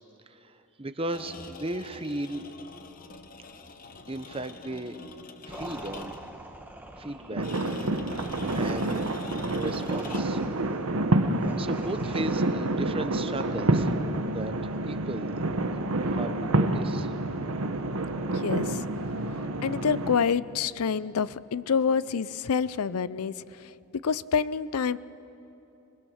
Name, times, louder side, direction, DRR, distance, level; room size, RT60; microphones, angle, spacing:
voice 1, 0.3-2.5 4.1-5.0 5.4-6.1 7.0-7.5 8.3-9.1 9.5-10.4 11.6-13.9 14.3-14.6 14.8-15.4 16.1-17.1, right 1 dB, 25° right, 10 dB, 0.8 m, -35 dB
sound 1, 1.0-6.4 7.4-10.5, left 3 dB, 40° left, 0.9 m, -44 dB
sound 2, 5.5-12.9, right 1 dB, 10° right, 1.1 m, -44 dB
sound 3, 7.4-20.2, right 2 dB, 70° right, 1.0 m, -28 dB
voice 2, 18.4-18.8 19.6-23.7 24.0-25.0, left 6 dB, 80° left, 17 dB, 0.5 m, -27 dB
26.0 x 21.0 x 6.4 m, 2.9 s
head